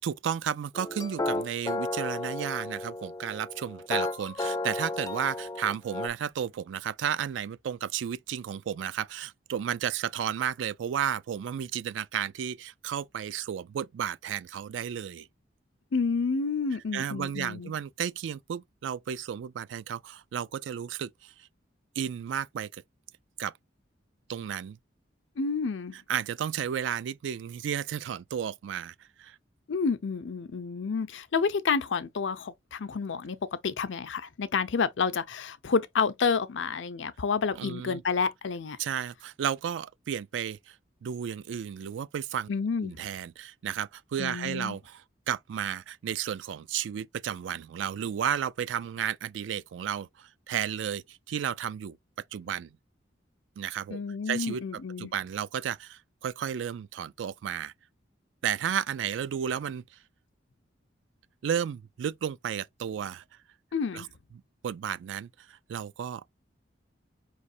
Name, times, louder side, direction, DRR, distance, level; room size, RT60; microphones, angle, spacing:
voice 1, 0.0-15.3 16.9-21.3 22.0-22.8 23.4-23.5 24.3-24.8 26.1-29.4 37.6-38.0 38.8-40.8 41.0-42.5 42.8-45.0 45.3-52.0 52.3-52.7 53.6-54.0 54.3-57.7 58.4-60.0 61.4-63.2 63.9-64.1 64.6-66.2, right 9 dB, 75° right, 0.3 m, -33 dB
sound 1, 0.8-6.1, left 2 dB, 20° left, 0.4 m, -33 dB
voice 2, 15.9-17.7 25.4-26.0 29.7-38.8 42.5-43.0 44.2-44.8 53.9-55.1 63.7-64.1, left 5 dB, 80° left, 0.5 m, -29 dB
4.8 x 3.1 x 2.6 m
head